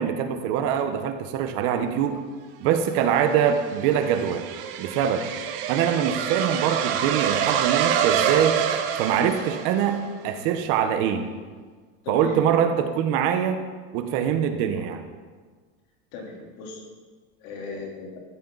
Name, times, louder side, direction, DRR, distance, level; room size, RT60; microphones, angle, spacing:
voice 1, 0.0-2.2 2.6-4.4 4.8-5.3 5.7-8.6 9.0-11.3 12.1-13.6 13.9-15.0, right 8 dB, 45° right, 7 dB, 1.0 m, -23 dB
sound 1, 3.0-10.1, right 9 dB, 70° right, 1.5 m, -26 dB
voice 2, 12.0-12.5 16.1-16.8 17.4-18.2, left 3 dB, 55° left, -1 dB, 3.5 m, -37 dB
15.0 x 14.0 x 4.0 m, 1.5 s
supercardioid pair, 175°, 29 cm